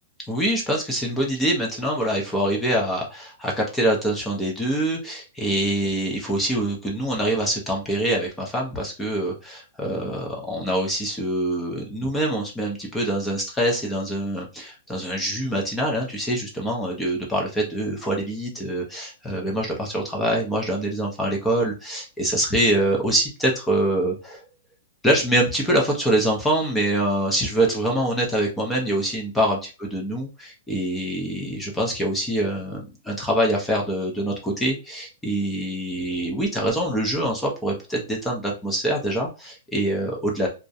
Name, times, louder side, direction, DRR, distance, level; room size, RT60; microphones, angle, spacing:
voice 1, 0.3-24.4 25.0-40.5, right 1 dB, 5° left, -1 dB, 0.5 m, -25 dB
2.3 x 2.0 x 2.6 m, 0.30 s
hypercardioid pair, 175°, 0 cm